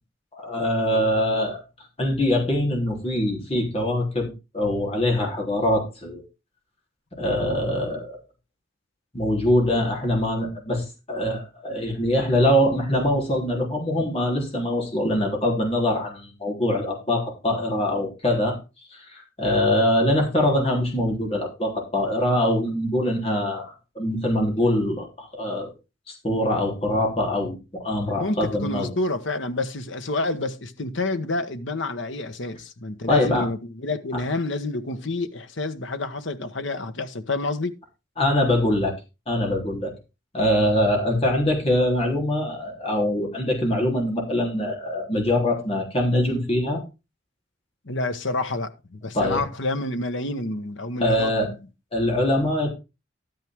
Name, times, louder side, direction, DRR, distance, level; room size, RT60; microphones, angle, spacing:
voice 1, 0.4-1.6 2.0-6.2 7.2-8.2 9.1-18.6 18.9-25.7 26.1-28.9 33.1-33.5 38.2-38.9 39.3-39.9 40.3-46.8 49.1-49.4 51.0-51.5 51.9-52.7, left 1 dB, 30° left, 3.5 m, -23 dB
voice 2, 28.2-37.7 47.8-51.6, left 2 dB, 70° left, 1.3 m, -28 dB
12.5 x 9.1 x 3.6 m
head